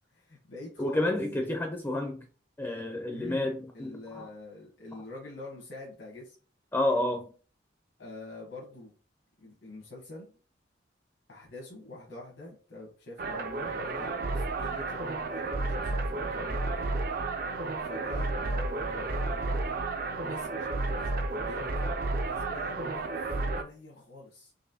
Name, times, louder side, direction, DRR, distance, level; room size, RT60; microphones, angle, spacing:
voice 1, 0.1-1.1 3.1-3.5 3.7-6.3 8.0-8.9 9.4-10.3 11.3-16.9 17.8-19.8 20.2-24.5, left 2 dB, 75° left, 1.1 m, -45 dB
voice 2, 0.8-2.2 2.6-4.3 6.7-7.2, left 1 dB, 10° left, 0.4 m, -30 dB
sound 1, 13.2-23.6, right 3 dB, 50° right, 0.4 m, -32 dB
4.0 x 3.0 x 2.7 m
head